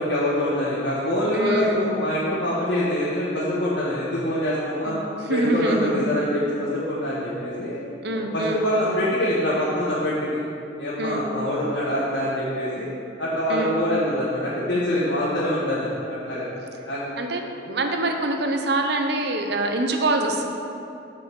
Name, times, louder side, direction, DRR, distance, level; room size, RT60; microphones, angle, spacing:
voice 1, 0.0-4.9 5.3-7.8 8.1-10.4 10.8-12.9 13.2-16.0 16.2-16.5 16.9-17.0, left 1 dB, 85° left, -9 dB, 1.6 m, -24 dB
voice 2, 1.3-2.0 4.8-5.0 5.2-6.0 8.0-8.6 11.0-11.2 13.5-13.8 17.2-20.5, right 2 dB, 65° right, 4 dB, 0.9 m, -25 dB
7.8 x 5.6 x 7.0 m, 2.7 s
head